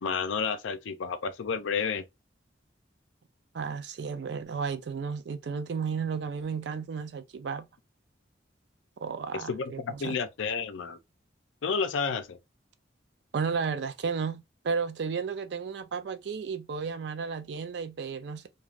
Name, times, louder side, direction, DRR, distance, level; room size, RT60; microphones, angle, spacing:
voice 1, 0.0-2.0 9.5-11.0 11.6-12.4, left 5 dB, 85° left, 0.5 m, -31 dB
voice 2, 3.5-7.7 9.0-10.2 13.3-18.5, right 5 dB, 65° right, 0.4 m, -33 dB
2.4 x 2.3 x 3.2 m
head